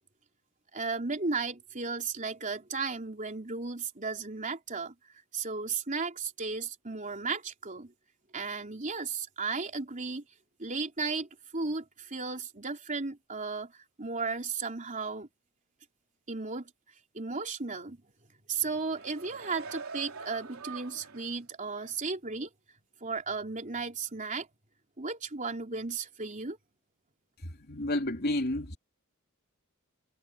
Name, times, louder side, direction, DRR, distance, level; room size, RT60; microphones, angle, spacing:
voice 1, 0.7-4.9 5.3-7.9 8.3-10.2 10.6-15.3 16.3-16.7 17.1-18.0 18.5-22.5 23.0-24.5 25.0-26.6, right 4 dB, 35° right, 3.8 m, -35 dB
sound 1, 18.7-21.4 21.8-21.9, right 4 dB, 75° right, 3.7 m, -44 dB
voice 2, 27.4-28.8, left 1 dB, 50° left, 3.2 m, -31 dB
head